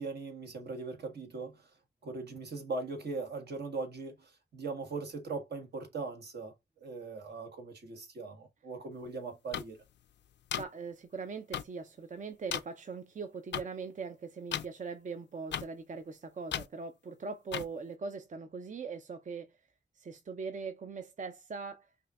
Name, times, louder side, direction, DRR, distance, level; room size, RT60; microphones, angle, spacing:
voice 1, 0.0-1.7 2.0-9.8, right 3 dB, 70° right, 1.4 m, -40 dB
sound 1, 9.5-9.6 10.5-10.6 11.5-11.6 12.5-12.6 13.5-13.6 14.5-14.6 15.5-15.6 16.5-16.7 17.5-17.6, left 10 dB, 85° left, 0.4 m, -34 dB
voice 2, 10.6-19.6 19.9-21.9, right 4 dB, 45° right, 0.5 m, -41 dB
5.3 x 2.6 x 2.4 m
cardioid pair, 80°, 18 cm